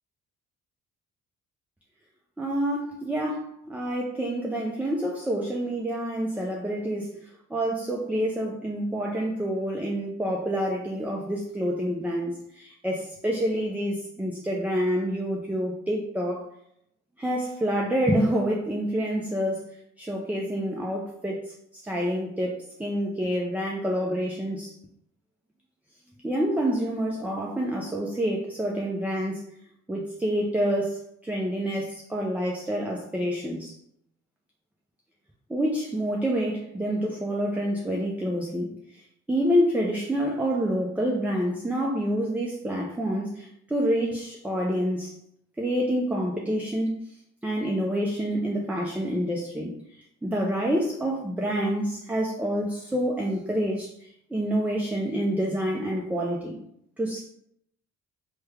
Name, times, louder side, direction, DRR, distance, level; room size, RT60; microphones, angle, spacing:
voice 1, 2.4-7.2 7.5-16.5 17.2-19.7 20.0-21.4 21.8-24.7 26.2-29.4 29.9-33.7 35.5-38.7 39.3-45.1 45.6-46.9 47.4-49.7 50.2-56.5 57.0-57.3, equal, 5° right, -1 dB, 0.4 m, -27 dB
3.2 x 2.2 x 3.4 m, 0.72 s
cardioid pair, 90°, 30 cm